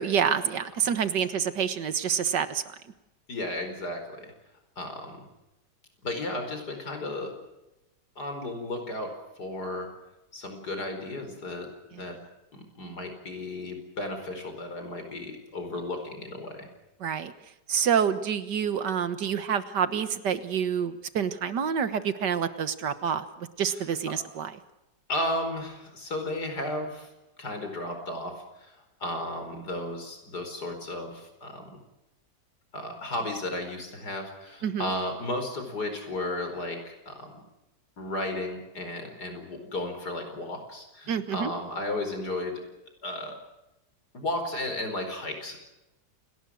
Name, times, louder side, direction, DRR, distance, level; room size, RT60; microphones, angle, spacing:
voice 1, 0.0-2.6 11.9-12.1 17.0-17.3 17.7-24.5 34.6-34.9 41.1-41.5, right 7 dB, 85° right, 12 dB, 2.0 m, -27 dB
voice 2, 3.3-4.3 4.8-5.2 6.0-7.4 8.2-9.1 9.4-9.9 10.3-12.2 12.5-16.7 25.1-27.1 27.4-31.8 32.7-37.4 38.0-42.6 43.0-43.4 44.1-45.6, left 1 dB, 70° left, 6 dB, 5.3 m, -34 dB
28.5 x 19.0 x 6.4 m, 0.95 s
omnidirectional pair, 1.8 m